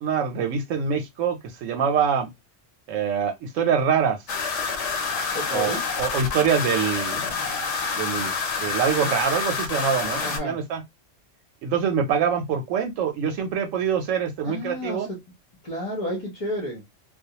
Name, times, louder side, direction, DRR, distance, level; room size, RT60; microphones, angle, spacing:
voice 1, 0.0-2.3 2.9-4.2 5.5-7.4 8.0-8.3 8.6-10.8 11.6-15.1, right 7 dB, 90° right, 1.0 m, -25 dB
sound 1, 4.3-10.4, left 5 dB, 70° left, 1.0 m, -28 dB
voice 2, 5.3-5.8 10.2-10.6 14.4-15.2 15.6-16.8, equal, 35° left, 0.7 m, -31 dB
2.3 x 2.1 x 2.7 m
omnidirectional pair, 1.3 m